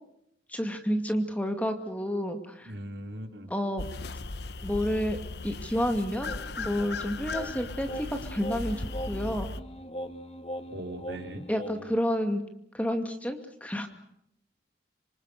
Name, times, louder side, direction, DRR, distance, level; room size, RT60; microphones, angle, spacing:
voice 1, 0.5-2.7 3.5-3.9 4.6-5.2 5.4-9.5 11.5-12.4 12.7-13.9, equal, 10° left, 6 dB, 2.4 m, -30 dB
voice 2, 2.7-3.5 10.7-11.4, right 1 dB, 70° right, 5 dB, 3.9 m, -39 dB
sound 1, 3.8-9.6, left 3 dB, 65° left, 1.2 m, -37 dB
sound 2, 6.2-12.0, equal, 30° left, 2.2 m, -41 dB
26.5 x 26.0 x 6.7 m, 0.76 s
head